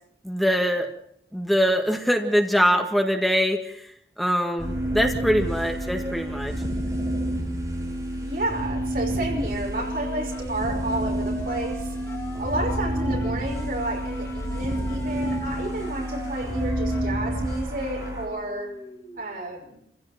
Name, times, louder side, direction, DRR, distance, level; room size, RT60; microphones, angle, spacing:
voice 1, 0.2-0.9 1.3-3.9 4.2-6.5, equal, ahead, 3 dB, 1.8 m, -23 dB
sound 1, 4.6-18.2, right 1 dB, 20° right, 6.5 m, -29 dB
voice 2, 8.2-11.9 12.4-18.8 19.2-19.8, right 1 dB, 50° right, 1 dB, 5.6 m, -31 dB
sound 2, 9.2-19.2, left 1 dB, 20° left, 2.9 m, -40 dB
27.5 x 16.0 x 5.9 m, 0.70 s
head